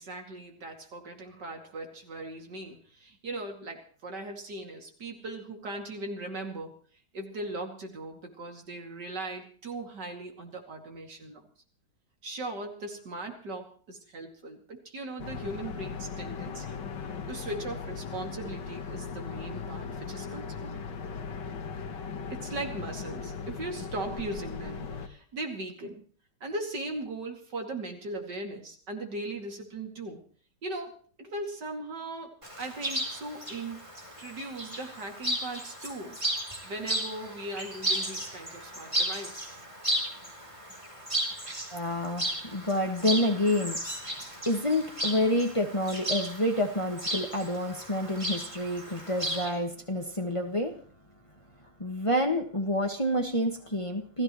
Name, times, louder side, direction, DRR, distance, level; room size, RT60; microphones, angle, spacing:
voice 1, 0.0-6.8 7.1-11.4 12.2-16.8 17.3-20.8 22.3-26.0 26.4-30.2 30.6-33.9 34.2-36.2 36.6-39.6, right 2 dB, 70° right, 3 dB, 3.2 m, -39 dB
sound 1, 15.2-25.1, left 5 dB, 80° left, 1.9 m, -38 dB
Chirp tweet, 32.4-49.5, right 1 dB, 15° right, 3.5 m, -35 dB
voice 2, 41.7-50.7 51.8-54.2, left 1 dB, 20° left, 3 dB, 1.6 m, -28 dB
28.0 x 15.5 x 3.1 m, 0.43 s
omnidirectional pair, 1.9 m